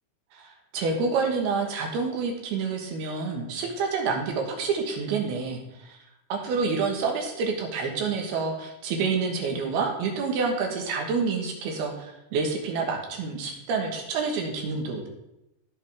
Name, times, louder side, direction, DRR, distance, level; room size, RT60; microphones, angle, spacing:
voice 1, 0.3-6.0 6.3-15.1, right 4 dB, 80° right, 2 dB, 3.4 m, -28 dB
16.5 x 5.7 x 3.5 m, 0.89 s
omnidirectional pair, 4.4 m